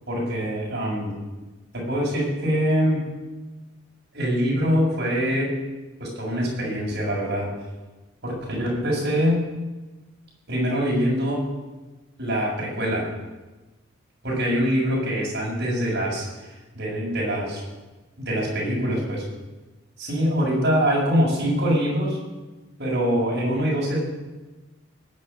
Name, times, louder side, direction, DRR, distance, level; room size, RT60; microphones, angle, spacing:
voice 1, 0.1-1.2 1.7-3.1 4.1-5.6 6.0-7.5 8.2-9.4 10.5-11.5 12.2-13.1 14.2-17.6 18.2-19.2 20.0-22.2 22.8-24.0, equal, 55° right, -4 dB, 6.9 m, -24 dB
19.0 x 6.6 x 10.0 m, 1.2 s
head